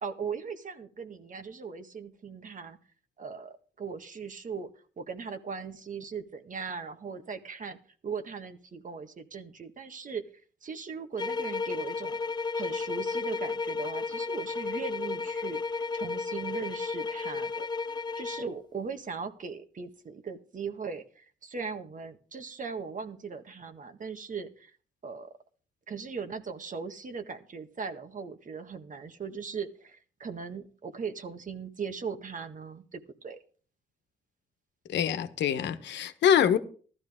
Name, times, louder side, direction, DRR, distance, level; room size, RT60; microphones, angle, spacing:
voice 1, 0.0-2.8 3.2-4.7 5.0-10.2 10.6-12.2 12.5-17.7 18.2-24.8 25.0-25.3 25.9-33.4, right 5 dB, 45° right, 1.7 m, -39 dB
sound 1, 11.2-18.5, left 4 dB, 25° left, 0.7 m, -33 dB
voice 2, 34.9-36.6, left 9 dB, 75° left, 1.2 m, -25 dB
15.5 x 13.0 x 3.7 m
cardioid pair, 70°, 18 cm